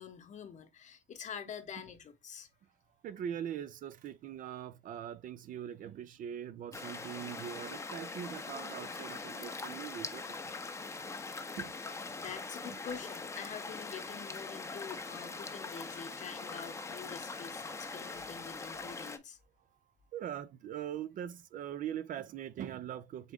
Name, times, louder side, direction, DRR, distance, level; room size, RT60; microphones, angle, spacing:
voice 1, 0.0-2.5 12.2-19.4, left 7 dB, 45° left, 0.9 m, -46 dB
voice 2, 3.0-10.4 11.0-11.1 11.6-11.8 12.0-12.2 20.1-23.3, right 9 dB, 55° right, 0.5 m, -42 dB
sound 1, 6.7-19.2, left 3 dB, 15° left, 0.6 m, -42 dB
3.8 x 3.5 x 3.5 m
cardioid pair, 110°, 17 cm